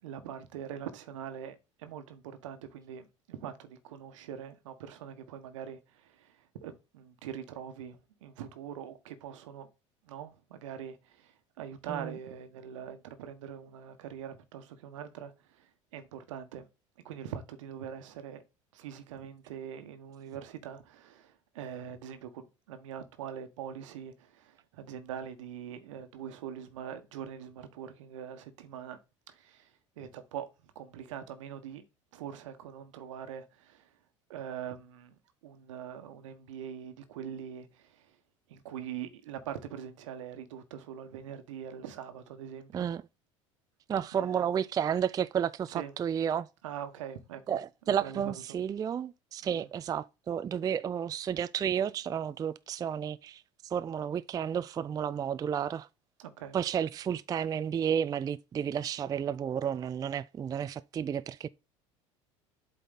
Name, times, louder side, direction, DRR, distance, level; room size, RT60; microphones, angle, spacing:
voice 1, 0.0-9.7 10.0-16.7 17.0-18.4 18.7-29.0 29.3-31.8 32.1-33.9 34.3-38.2 38.5-42.9 44.1-44.4 45.7-45.9 46.6-47.6 48.0-48.6 49.4-49.7 56.2-56.6, right 9 dB, 75° right, 1.2 m, -43 dB
voice 2, 43.9-46.5 47.5-55.9 56.5-61.5, right 8 dB, 25° right, 0.3 m, -32 dB
8.0 x 4.0 x 4.0 m
hypercardioid pair, 70°, 16 cm